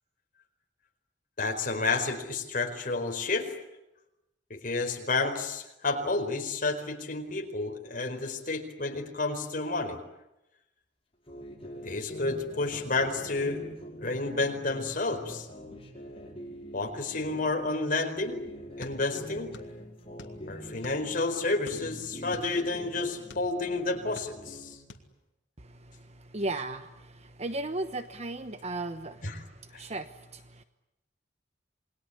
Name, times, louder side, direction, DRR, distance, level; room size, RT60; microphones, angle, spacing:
voice 1, 1.4-3.5 4.5-10.0 11.8-13.6 14.0-15.5 16.7-18.4 18.8-19.5 20.5-24.8 29.2-29.4 29.7-29.8, left 3 dB, 50° left, 5 dB, 4.6 m, -30 dB
sound 1, 11.3-17.7 18.2-21.5 21.7-24.9, equal, 30° left, 5.4 m, -44 dB
sound 2, 18.8-19.8 20.0-21.2 21.6-23.5 24.0-24.6 24.9-25.1, left 2 dB, 85° left, 2.7 m, -48 dB
voice 2, 25.6-30.6, right 2 dB, 35° right, 10 dB, 1.1 m, -36 dB
28.0 x 21.5 x 9.9 m, 0.91 s
head